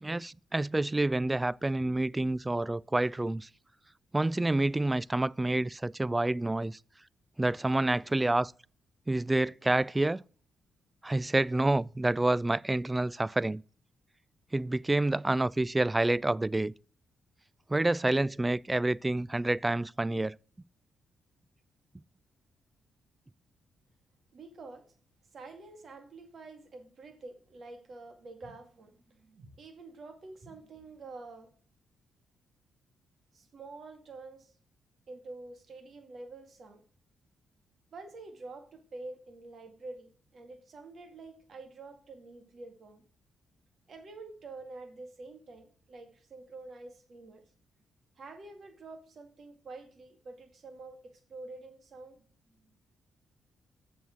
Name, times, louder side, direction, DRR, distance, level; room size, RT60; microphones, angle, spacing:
voice 1, 0.0-3.5 4.1-6.8 7.4-8.5 9.1-10.2 11.0-13.6 14.5-16.7 17.7-20.4, right 2 dB, 20° right, 0.3 m, -28 dB
voice 2, 24.3-24.9 25.3-31.5 33.3-34.5 35.1-36.8 37.9-43.0 43.9-47.4 48.2-52.2, right 3 dB, 55° right, 2.2 m, -47 dB
7.2 x 6.2 x 6.1 m
supercardioid pair, 55°, 0 cm